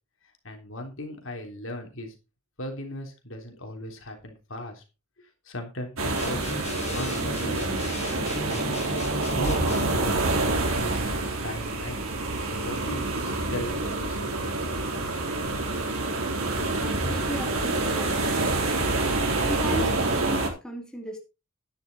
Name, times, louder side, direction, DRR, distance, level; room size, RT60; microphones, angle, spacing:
voice 1, 0.4-2.1 2.6-4.8 5.4-6.6 6.9-7.7 8.1-8.9 9.3-10.5 11.4-12.0 12.4-14.5, left 1 dB, 60° left, 3 dB, 3.4 m, -37 dB
sound 1, 6.0-20.5, right 2 dB, 75° right, 4.1 m, -27 dB
sound 2, 6.2-10.0, left 2 dB, 30° left, 1.8 m, -36 dB
voice 2, 16.6-18.3 19.4-21.2, equal, 5° left, 0 dB, 3.2 m, -35 dB
11.5 x 10.5 x 4.1 m, 0.28 s
head